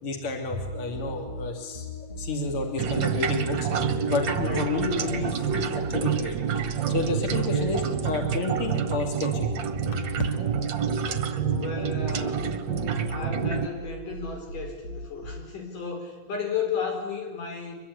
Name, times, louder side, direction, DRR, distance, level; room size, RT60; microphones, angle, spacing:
voice 1, 0.0-1.9 2.2-3.7 4.1-6.4 6.9-9.5, left 3 dB, 45° left, 3 dB, 3.9 m, -30 dB
sound 1, 0.6-15.7, equal, 60° left, 4.1 m, -39 dB
sound 2, 2.8-13.7, right 7 dB, 50° right, 1.6 m, -28 dB
voice 2, 4.4-4.8 7.3-7.8 11.5-12.5 13.1-17.8, left 6 dB, 90° left, 3 dB, 6.3 m, -33 dB
24.5 x 22.5 x 9.9 m, 1.2 s
omnidirectional pair, 3.6 m